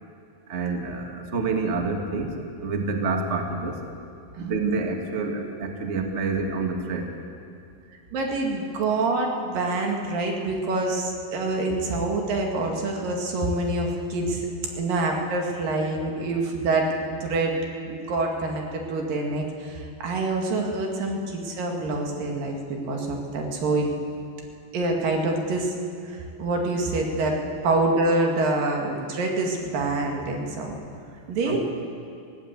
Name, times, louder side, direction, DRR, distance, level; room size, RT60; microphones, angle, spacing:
voice 1, 0.5-1.0 1.3-2.3 2.6-3.7 4.4-7.0 31.5-31.6, right 4 dB, 45° right, 3 dB, 0.8 m, -27 dB
voice 2, 8.1-14.5 14.8-17.0 17.2-17.6 17.9-23.9 24.7-25.7 26.0-27.4 27.6-30.8 31.3-31.6, right 2 dB, 70° right, 1 dB, 3.6 m, -26 dB
20.0 x 16.0 x 8.1 m, 2.5 s
omnidirectional pair, 4.2 m